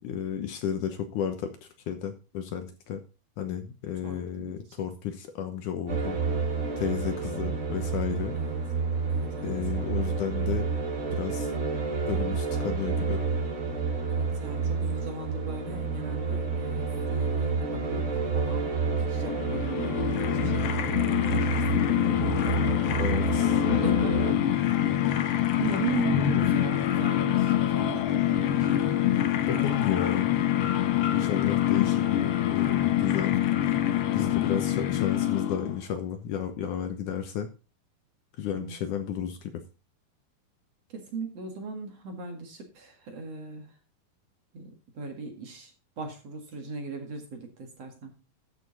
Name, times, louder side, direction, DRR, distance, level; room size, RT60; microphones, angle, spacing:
voice 1, 0.0-3.0 3.4-6.2 6.8-8.4 9.4-10.7 11.1-11.5 12.1-13.2 23.0-23.6 29.5-30.3 31.1-33.4 34.1-37.5 38.4-39.5, left 9 dB, 70° left, 8 dB, 2.3 m, -32 dB
voice 2, 4.0-4.6 5.9-6.4 8.3-8.6 9.1-9.5 14.1-25.1 25.6-28.8 34.2-34.4 38.5-38.8 40.9-43.7 44.5-45.7 46.0-48.2, right 4 dB, 50° right, 4 dB, 2.8 m, -38 dB
sound 1, 5.9-24.3, right 4 dB, 75° right, 6.1 m, -29 dB
sound 2, 19.1-35.8, left 12 dB, 85° left, 1.3 m, -25 dB
13.5 x 6.9 x 4.0 m, 0.32 s
omnidirectional pair, 4.2 m